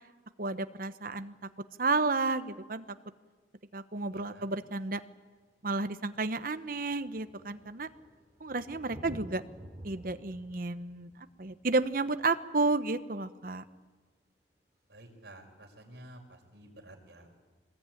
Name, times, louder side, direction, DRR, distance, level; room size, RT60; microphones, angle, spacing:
voice 1, 0.4-1.3 1.8-2.8 3.7-5.0 5.6-7.9 8.4-9.4 9.8-11.1 11.4-13.6, right 3 dB, 50° right, 11 dB, 1.0 m, -31 dB
voice 2, 4.1-4.5 14.9-17.4, right 1 dB, 65° right, 1 dB, 5.3 m, -52 dB
Thunder, 5.6-5.7 5.9-13.3 14.9-15.0, equal, 15° right, 4.2 m, -52 dB
24.0 x 20.5 x 9.2 m, 1.4 s
head